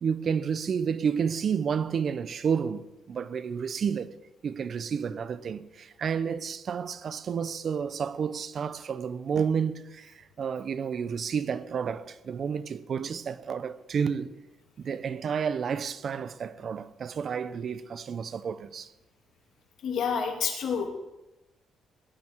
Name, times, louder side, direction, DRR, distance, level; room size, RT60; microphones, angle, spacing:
voice 1, 0.0-4.1 4.4-14.3 14.8-18.9, right 7 dB, 55° right, 0.9 m, -30 dB
voice 2, 19.8-20.9, left 6 dB, 70° left, 3.0 m, -28 dB
19.0 x 12.0 x 4.7 m
cardioid pair, 90°, 0 cm